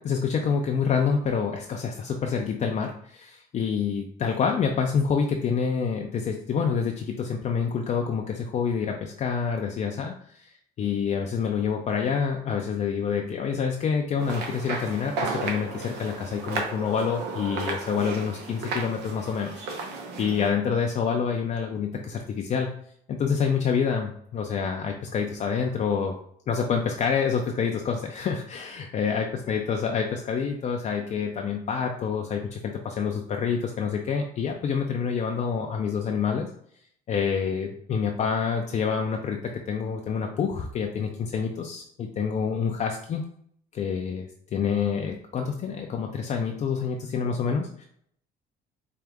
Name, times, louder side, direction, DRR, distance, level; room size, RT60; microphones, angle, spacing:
voice 1, 0.0-10.5 10.8-19.6 20.2-22.7 23.1-26.2 26.5-36.5 37.1-39.4 39.7-43.2 43.7-47.9, left 6 dB, 45° left, 2 dB, 0.5 m, -27 dB
sound 1, 14.2-20.5, right 3 dB, 80° right, 0.9 m, -34 dB
4.5 x 2.5 x 3.5 m, 0.65 s
cardioid pair, 110°, 17 cm